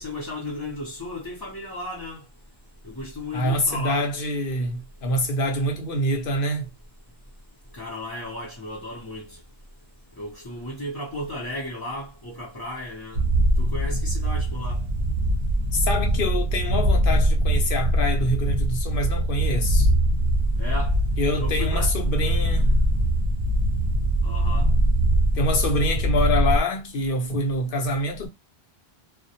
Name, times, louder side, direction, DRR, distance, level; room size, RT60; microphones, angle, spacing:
voice 1, 0.0-2.2 2.8-4.1 7.7-9.4 10.2-13.2 13.6-14.8 20.6-21.0 21.4-22.0 22.7-22.8 24.2-24.7, left 1 dB, 25° left, 0.6 m, -34 dB
voice 2, 3.3-6.7 15.7-19.9 21.2-22.7 25.3-28.3, left 1 dB, 60° left, 0.8 m, -26 dB
sound 1, 13.1-26.6, right 1 dB, 55° right, 0.7 m, -22 dB
2.2 x 2.1 x 2.7 m
omnidirectional pair, 1.1 m